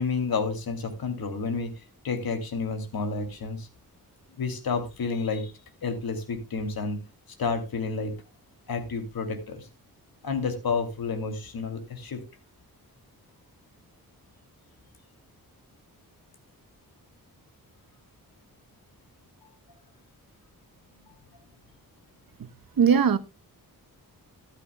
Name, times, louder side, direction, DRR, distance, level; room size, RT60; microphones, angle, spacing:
voice 1, 0.0-3.7 4.4-5.5 5.8-7.0 7.4-8.1 8.7-9.7 10.2-12.2, left 4 dB, 80° left, 2.7 m, -30 dB
voice 2, 22.8-23.2, right 7 dB, 70° right, 1.1 m, -20 dB
13.0 x 13.0 x 2.2 m
wide cardioid pair, 125°, 36 cm